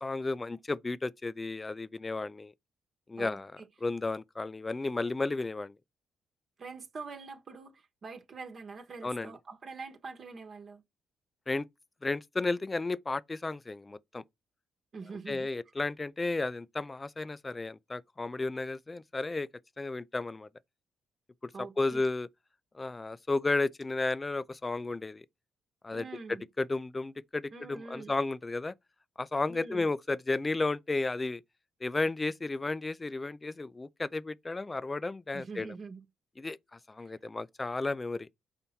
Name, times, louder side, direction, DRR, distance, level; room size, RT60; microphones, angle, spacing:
voice 1, 0.0-2.5 3.1-3.5 3.8-5.7 9.0-9.3 11.5-11.7 12.0-14.2 15.3-19.5 19.8-20.5 21.4-22.3 22.7-25.2 25.8-26.0 26.6-28.7 29.2-31.4 31.8-35.7 36.4-38.3, left 3 dB, 20° left, 0.4 m, -33 dB
voice 2, 3.2-3.7 6.6-10.8 14.9-15.5 21.5-22.0 25.9-26.5 27.5-28.1 29.5-29.9 35.3-36.0 37.0-37.1, right 4 dB, 45° right, 1.2 m, -45 dB
5.4 x 4.3 x 5.7 m
cardioid pair, 90°, 0 cm